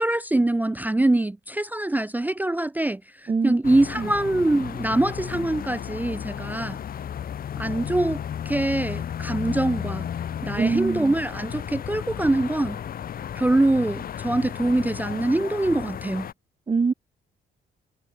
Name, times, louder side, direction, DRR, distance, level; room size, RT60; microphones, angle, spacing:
voice 1, 0.0-6.8 7.6-10.1 10.4-12.8 13.3-16.3, right 2 dB, 10° right, 0.4 m, -24 dB
sound 1, 3.6-16.3, left 9 dB, 45° left, 0.7 m, -33 dB
voice 2, 10.6-11.1 16.7-16.9, right 4 dB, 25° right, 1.1 m, -23 dB
cardioid pair, 90°, 20 cm